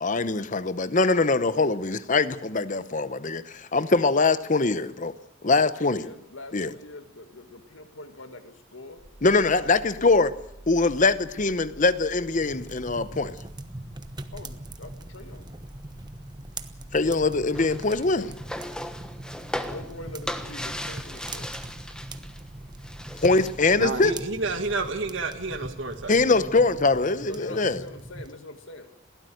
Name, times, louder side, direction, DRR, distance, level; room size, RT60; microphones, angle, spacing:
voice 1, 0.0-5.1 5.4-6.1 6.5-6.7 9.2-10.3 10.7-13.3 16.9-18.3 23.2-24.1 26.1-27.8, left 3 dB, 40° left, 0.9 m, -23 dB
voice 2, 5.5-9.0 9.3-10.2 14.3-15.5 19.7-21.5 27.2-28.9, left 2 dB, 70° left, 2.1 m, -43 dB
sound 1, 9.0-27.0, right 1 dB, 50° right, 2.2 m, -48 dB
sound 2, 12.4-28.3, right 2 dB, 20° right, 1.0 m, -42 dB
sound 3, 17.5-22.4 22.7-23.7, left 1 dB, 5° left, 1.2 m, -37 dB
voice 3, 23.8-26.1, right 3 dB, 65° right, 1.8 m, -30 dB
22.0 x 16.0 x 7.8 m
head